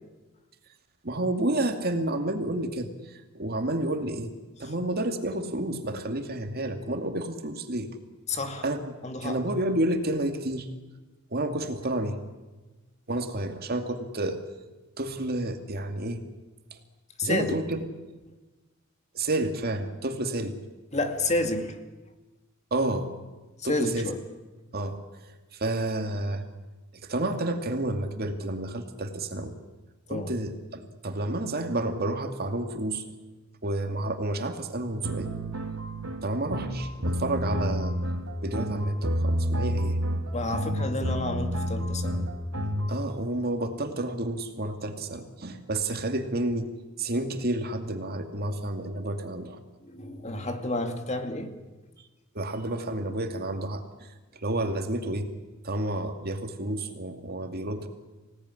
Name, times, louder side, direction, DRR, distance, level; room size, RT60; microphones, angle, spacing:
voice 1, 1.0-4.3 4.6-7.9 8.6-8.8 9.2-10.7 11.3-12.2 13.1-14.4 15.0-16.2 17.2-17.8 19.1-20.6 22.7-23.1 23.6-24.1 24.7-25.0 25.5-26.4 27.1-29.5 30.1-33.0 33.6-35.4 36.2-38.0 38.4-40.0 42.9-46.7 47.0-49.6 52.3-54.1 54.4-55.3 55.6-57.9, right 1 dB, 50° right, 5 dB, 2.5 m, -30 dB
voice 2, 8.3-8.6 9.0-9.4 17.2-17.5 20.9-21.8 23.6-24.2 30.1-30.3 40.3-42.3 49.8-51.5, left 2 dB, 35° left, 6 dB, 2.2 m, -30 dB
sound 1, 35.0-42.9, equal, 80° right, 2.7 m, -29 dB
26.0 x 18.0 x 9.9 m, 1.2 s
head